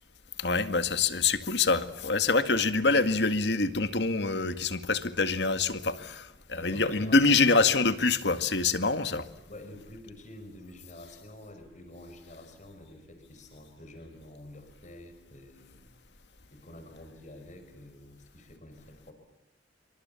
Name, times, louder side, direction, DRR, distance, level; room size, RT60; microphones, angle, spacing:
voice 1, 0.4-9.3, left 3 dB, 70° left, 2.0 m, -25 dB
voice 2, 6.5-7.7 9.5-15.9 16.5-19.1, left 1 dB, 45° left, 5.5 m, -48 dB
28.0 x 25.5 x 7.2 m
head